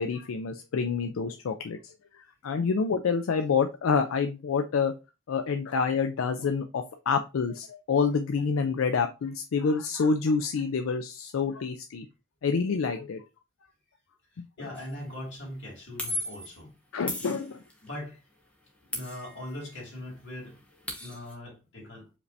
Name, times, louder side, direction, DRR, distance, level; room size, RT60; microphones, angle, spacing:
voice 1, 0.0-4.9 5.3-12.1 12.4-13.2 14.4-14.5 16.9-17.6, left 5 dB, 90° left, 0.4 m, -28 dB
voice 2, 14.3-16.7 17.8-18.2 18.9-20.6 21.0-22.1, left 1 dB, 60° left, 2.6 m, -40 dB
sound 1, 14.8-15.0 16.0-16.5 17.1-17.9 18.9-19.8 20.1-20.2 20.5-21.3, left 1 dB, 5° left, 0.9 m, -36 dB
4.9 x 3.2 x 2.7 m
head